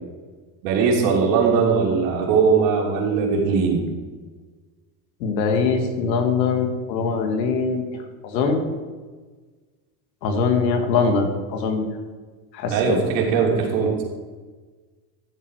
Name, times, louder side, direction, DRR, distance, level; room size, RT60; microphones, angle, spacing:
voice 1, 0.6-3.9 12.7-14.0, right 5 dB, 80° right, -1 dB, 3.4 m, -20 dB
voice 2, 5.2-7.8 8.2-8.6 10.2-12.0 12.5-13.0, left 4 dB, 90° left, 5 dB, 2.1 m, -22 dB
13.0 x 8.1 x 4.9 m, 1.4 s
supercardioid pair, 105°, 50 cm